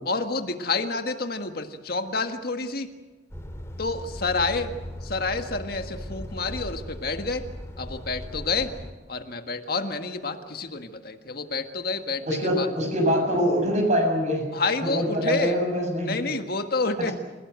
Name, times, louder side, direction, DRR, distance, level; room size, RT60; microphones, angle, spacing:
voice 1, 0.1-2.9 3.8-4.7 5.0-7.4 7.8-8.7 9.1-12.7 14.5-15.6 16.0-17.1, left 3 dB, 55° left, 7 dB, 1.7 m, -28 dB
Truck, 3.3-8.9, left 1 dB, 15° left, 2.3 m, -38 dB
voice 2, 12.3-14.4 14.8-16.2, equal, 40° right, 3 dB, 7.2 m, -24 dB
28.0 x 17.5 x 8.2 m, 1.2 s
head